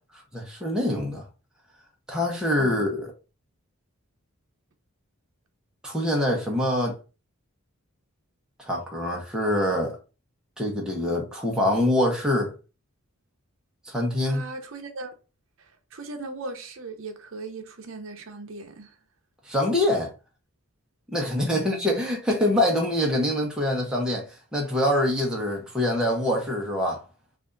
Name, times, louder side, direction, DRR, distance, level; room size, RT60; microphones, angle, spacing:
voice 1, 0.3-1.3 2.1-3.1 5.8-7.0 8.6-10.0 10.6-12.5 13.9-14.4 19.5-20.1 21.1-27.0, left 1 dB, 5° right, 0.8 m, -25 dB
voice 2, 14.2-15.2 15.6-18.9 21.5-21.9, right 2 dB, 60° right, 0.7 m, -38 dB
3.4 x 2.5 x 3.7 m
head